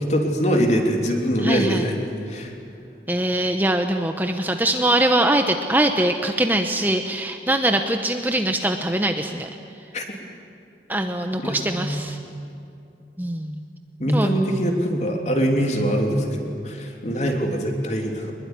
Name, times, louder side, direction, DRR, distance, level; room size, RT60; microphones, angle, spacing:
voice 1, 0.1-2.0 2.3-2.5 9.9-10.0 11.4-12.1 14.0-18.3, equal, 40° left, 2 dB, 3.3 m, -23 dB
voice 2, 1.4-1.8 3.1-9.5 10.9-12.2 13.2-13.6 14.1-14.3, right 1 dB, 10° right, 5 dB, 0.9 m, -22 dB
24.0 x 21.5 x 9.8 m, 2.6 s
head